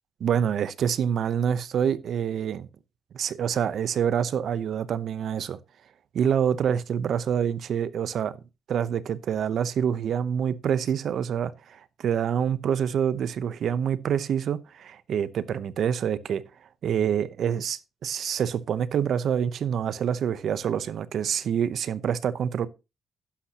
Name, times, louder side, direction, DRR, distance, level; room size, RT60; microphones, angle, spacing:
voice 1, 0.2-2.7 3.1-5.6 6.1-8.4 8.7-16.4 16.8-22.7, right 8 dB, 65° right, 0.8 m, -26 dB
11.5 x 10.0 x 2.9 m
cardioid pair, 90°, 0 cm